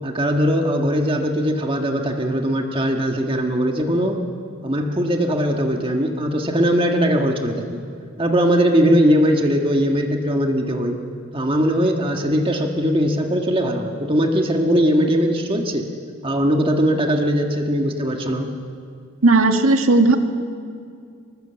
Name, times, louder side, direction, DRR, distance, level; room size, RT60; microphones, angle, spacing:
voice 1, 0.0-4.2 4.6-7.8 8.2-11.0 11.3-15.9 16.2-18.5, equal, 25° right, 3 dB, 1.6 m, -20 dB
voice 2, 19.2-20.2, right 2 dB, 80° right, 5 dB, 1.8 m, -15 dB
25.0 x 19.0 x 8.0 m, 2.3 s
head